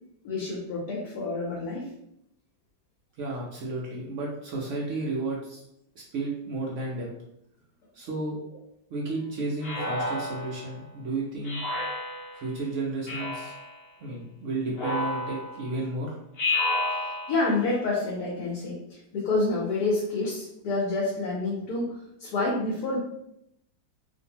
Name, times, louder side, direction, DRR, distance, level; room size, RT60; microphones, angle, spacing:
voice 1, 0.2-1.9 17.3-21.9 22.2-23.0, left 2 dB, 70° left, -3 dB, 1.1 m, -28 dB
voice 2, 3.2-5.6 6.1-7.1 7.9-8.6 8.9-11.6 12.3-13.5 14.0-16.2, right 2 dB, 80° right, -3 dB, 0.6 m, -32 dB
Speech synthesizer, 9.6-10.7 11.4-12.5 13.1-13.7 14.7-15.7 16.4-17.5, left 2 dB, 50° left, 0.7 m, -31 dB
2.6 x 2.5 x 2.8 m, 0.77 s
omnidirectional pair, 1.9 m